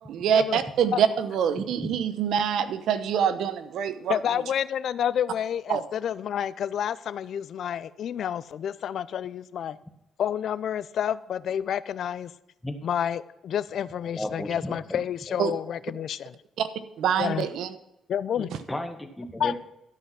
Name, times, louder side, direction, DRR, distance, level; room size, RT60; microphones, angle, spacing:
voice 1, 0.1-4.2 5.7-5.8 15.4-15.5 16.6-16.7 17.0-17.7, right 8 dB, 75° right, 12 dB, 0.9 m, -25 dB
voice 2, 1.6-1.9 12.6-12.9 14.1-15.0 15.3-15.4 18.4-19.5, left 1 dB, 10° left, 7 dB, 1.5 m, -35 dB
voice 3, 4.1-9.8 10.2-12.3 12.8-16.3 17.2-17.5 18.1-18.5 19.4-19.5, left 9 dB, 65° left, 17 dB, 0.5 m, -29 dB
12.5 x 5.7 x 5.8 m, 0.89 s
cardioid pair, 90°, 0 cm